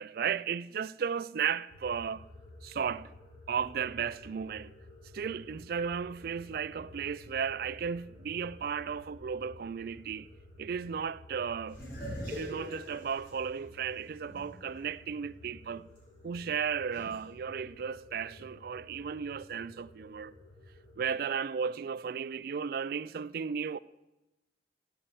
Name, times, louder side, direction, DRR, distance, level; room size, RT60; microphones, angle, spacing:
voice 1, 0.0-2.3 2.6-3.1 3.5-4.7 5.1-10.3 10.6-11.8 12.3-15.9 16.2-20.3 21.0-23.8, right 7 dB, 50° right, 0.3 m, -35 dB
sound 1, 1.7-21.0, left 1 dB, 30° left, 1.9 m, -53 dB
sound 2, 11.7-14.8 15.2-15.3 16.9-17.2, equal, 45° left, 4.6 m, -42 dB
16.5 x 5.5 x 7.1 m
head